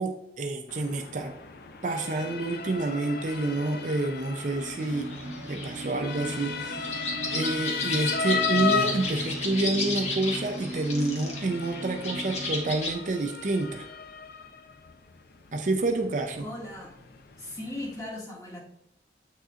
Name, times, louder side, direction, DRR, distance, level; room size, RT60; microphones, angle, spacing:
voice 1, 0.0-1.3 1.8-5.1 5.5-7.0 7.3-13.9 15.5-16.5, right 2 dB, 45° right, 6 dB, 0.5 m, -28 dB
Motor vehicle (road) / Siren, 0.7-18.1, left 5 dB, 55° left, 0.6 m, -36 dB
sound 1, 4.5-12.8, right 1 dB, 85° right, 0.7 m, -38 dB
sound 2, 4.8-12.9, left 2 dB, 40° left, 1.4 m, -34 dB
voice 2, 16.4-17.0 17.4-18.6, left 1 dB, 20° left, -5 dB, 1.9 m, -38 dB
8.0 x 6.4 x 2.4 m, 0.78 s
head